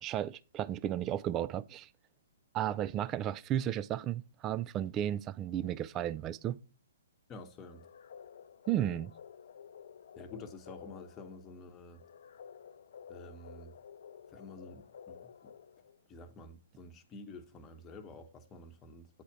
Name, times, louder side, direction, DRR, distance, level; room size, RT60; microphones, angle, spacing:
voice 1, 0.0-1.9 2.5-6.6 8.7-9.1, right 11 dB, 25° right, 0.3 m, -34 dB
voice 2, 7.3-7.8 10.2-12.0 13.1-13.7 14.3-15.5 16.1-19.2, left 3 dB, 20° left, 1.0 m, -49 dB
sound 1, 7.6-16.1, left 7 dB, 60° left, 0.4 m, -52 dB
8.9 x 4.3 x 4.8 m
hypercardioid pair, 130°, 0 cm